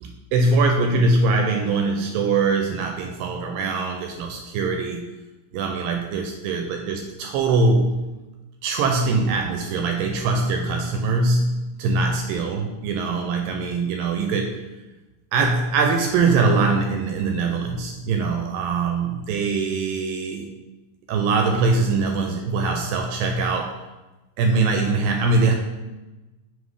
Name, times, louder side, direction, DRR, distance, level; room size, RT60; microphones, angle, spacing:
voice 1, 0.0-5.1 5.5-8.1 8.6-14.6 15.3-20.4 21.1-23.8 24.4-25.5, right 3 dB, 80° right, 3 dB, 2.2 m, -22 dB
5.1 x 4.1 x 4.8 m, 1.1 s
omnidirectional pair, 4.2 m